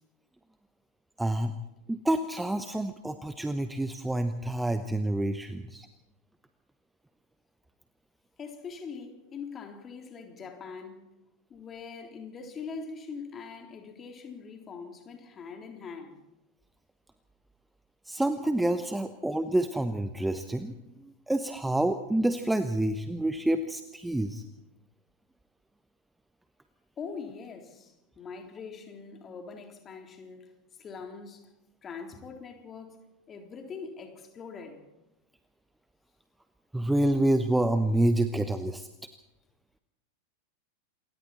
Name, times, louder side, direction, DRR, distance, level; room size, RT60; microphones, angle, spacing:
voice 1, 1.2-1.5 1.9-5.9 18.1-24.4 36.7-38.9, right 1 dB, 5° right, 1.0 m, -28 dB
voice 2, 8.4-11.1 11.5-16.2 27.0-30.5 30.8-31.5 31.8-34.9, left 5 dB, 25° left, 3.6 m, -42 dB
28.0 x 22.5 x 4.3 m
figure-of-eight pair, 90°, 0 cm